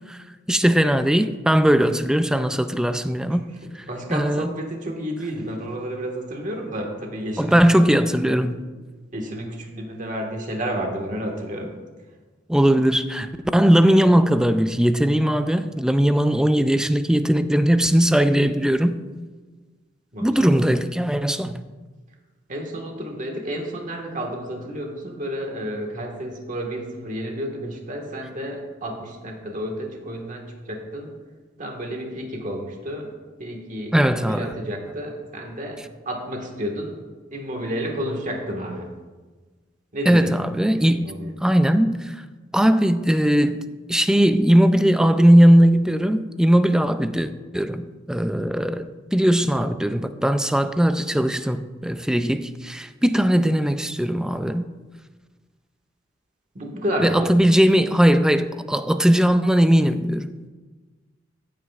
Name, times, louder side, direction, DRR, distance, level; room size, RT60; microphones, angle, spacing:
voice 1, 0.5-3.4 3.7-3.8 4.1-4.5 7.4-8.6 12.5-19.0 20.2-21.6 33.9-34.5 40.1-41.1 41.4-42.2 42.5-43.6 43.9-54.6 57.0-60.3, equal, 5° right, 0.3 m, -19 dB
voice 2, 3.9-7.6 8.0-8.4 9.1-11.7 20.1-20.6 22.5-31.1 31.6-33.1 33.4-35.8 36.0-36.9 37.3-38.9 39.9-40.3 40.6-41.3 56.5-57.5, equal, 40° right, 1.6 m, -31 dB
15.0 x 9.2 x 2.4 m
head